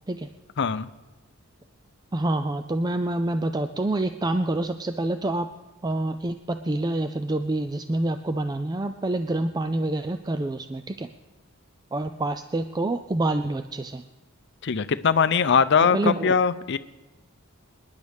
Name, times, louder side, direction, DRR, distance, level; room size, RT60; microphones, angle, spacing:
voice 1, 0.6-0.9 14.6-16.8, left 6 dB, 60° left, 13 dB, 0.5 m, -21 dB
voice 2, 2.1-5.5 5.8-11.1 11.9-14.0 15.8-16.3, right 2 dB, 20° right, 8 dB, 0.4 m, -27 dB
27.0 x 10.5 x 3.5 m, 1.2 s
head